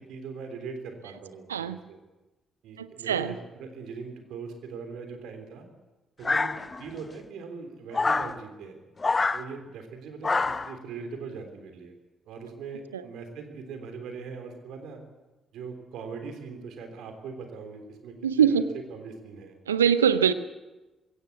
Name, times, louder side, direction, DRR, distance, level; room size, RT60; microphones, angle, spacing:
voice 1, 0.0-2.0 2.6-5.7 6.2-6.5 6.8-8.8 9.3-11.9 12.3-15.0 15.5-18.5 18.9-19.6, right 5 dB, 60° right, 6 dB, 3.4 m, -41 dB
voice 2, 2.8-3.4 12.9-13.0 18.2-18.6 19.7-20.3, right 8 dB, 80° right, 14 dB, 0.7 m, -23 dB
sound 1, 6.2-7.0 7.9-8.3 9.0-9.4 10.2-10.7, left 3 dB, 30° left, 0.9 m, -26 dB
21.5 x 17.0 x 8.4 m, 1.1 s
figure-of-eight pair, 40°, 0 cm